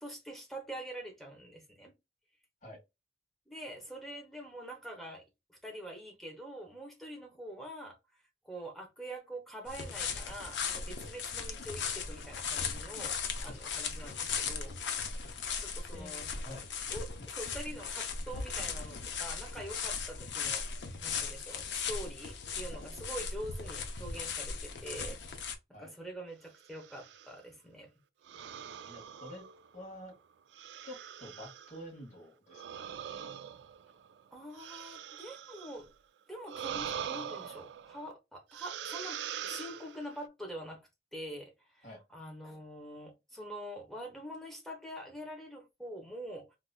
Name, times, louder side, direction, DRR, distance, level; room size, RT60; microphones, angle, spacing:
voice 1, 0.0-1.9 3.5-5.2 5.5-8.0 8.4-14.7 15.6-16.2 16.9-25.2 25.8-27.9 34.3-35.9 36.3-40.8 41.1-41.9 42.1-46.5, right 1 dB, ahead, 0.8 m, -45 dB
sound 1, 9.7-25.5, left 6 dB, 85° left, 0.7 m, -37 dB
voice 2, 15.9-16.6 25.7-25.9 28.8-29.4 29.7-30.2 30.8-32.6 41.8-42.0, equal, 40° left, 1.8 m, -48 dB
sound 2, 26.7-27.4 28.3-29.9 30.5-31.8 32.5-35.9 36.4-38.1 38.5-40.3, right 8 dB, 80° right, 0.3 m, -43 dB
3.5 x 2.6 x 2.2 m
head